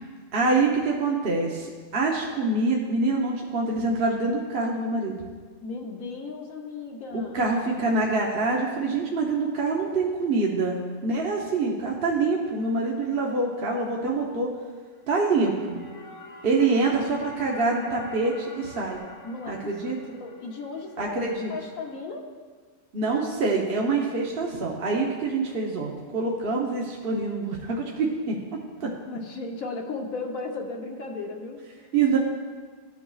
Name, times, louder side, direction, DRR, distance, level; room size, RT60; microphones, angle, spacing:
voice 1, 0.3-5.2 7.1-14.5 15.1-15.8 16.4-19.0 19.5-20.0 21.0-21.5 22.9-28.4 28.8-28.9 31.9-32.2, right 3 dB, 50° right, -2 dB, 1.0 m, -25 dB
voice 2, 5.6-7.4 19.2-21.1 21.5-22.3 29.0-31.8, left 3 dB, 90° left, 1 dB, 1.4 m, -36 dB
sound 1, 15.0-21.9, left 2 dB, 70° left, 1.3 m, -47 dB
14.0 x 6.0 x 2.4 m, 1.5 s
omnidirectional pair, 1.4 m